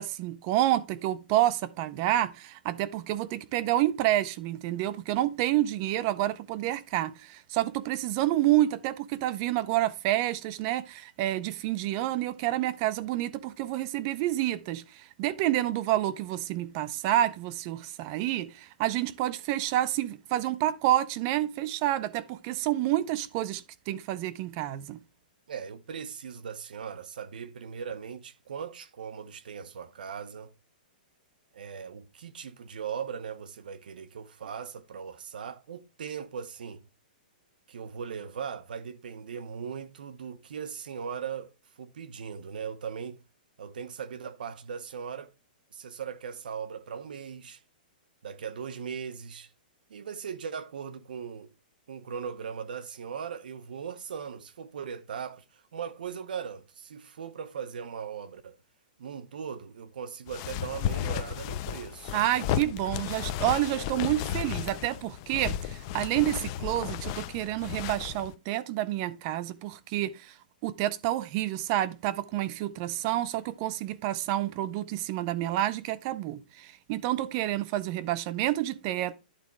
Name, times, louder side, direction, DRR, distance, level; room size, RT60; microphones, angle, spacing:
voice 1, 0.0-25.0 62.1-70.3 70.6-79.1, right 14 dB, 25° right, 0.5 m, -29 dB
voice 2, 25.5-30.5 31.5-36.8 37.7-43.2 43.6-45.3 45.7-47.6 48.2-49.5 49.9-51.5 51.9-58.6 59.0-62.2, right 7 dB, 70° right, 1.0 m, -39 dB
sound 1, 60.3-68.3, left 10 dB, 25° left, 0.5 m, -34 dB
11.5 x 4.1 x 4.8 m
hypercardioid pair, 180°, 5 cm